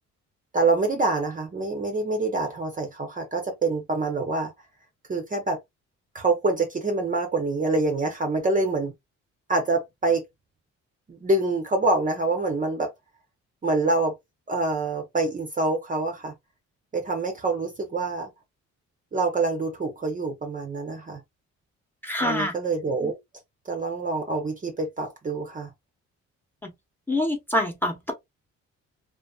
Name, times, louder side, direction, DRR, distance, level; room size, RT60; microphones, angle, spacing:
voice 1, 0.5-4.5 5.1-5.6 6.1-8.9 9.5-10.2 11.1-12.9 13.6-14.2 14.5-16.3 16.9-18.3 19.1-21.2 22.2-23.2 23.7-25.7, right 3 dB, 25° right, 0.7 m, -26 dB
voice 2, 22.0-22.5 26.6-26.7 27.1-28.1, left 1 dB, 5° left, 0.9 m, -25 dB
2.5 x 2.5 x 2.2 m
cardioid pair, 90°, 30 cm